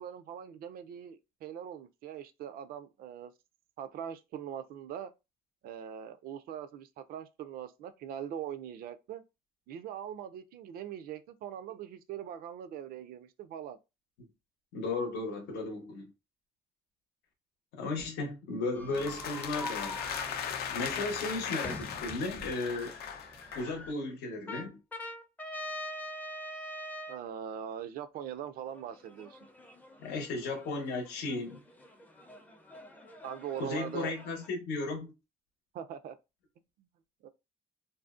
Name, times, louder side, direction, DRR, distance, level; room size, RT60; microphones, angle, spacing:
voice 1, 0.0-3.3 3.8-5.1 5.6-9.2 9.7-13.8 20.9-21.3 27.1-29.4 33.2-34.1 35.7-36.2 37.2-37.3, right 9 dB, 60° right, 0.4 m, -42 dB
voice 2, 14.7-16.1 17.7-20.0 20.7-22.9 23.5-24.8 30.0-31.6 33.6-35.1, left 3 dB, 85° left, 0.8 m, -35 dB
sound 1, 18.7-23.9 24.5-27.2 28.7-34.5, left 1 dB, 10° left, 0.4 m, -45 dB
sound 2, 18.9-23.8, left 8 dB, 65° left, 0.4 m, -38 dB
2.6 x 2.0 x 2.3 m
cardioid pair, 110°, 17 cm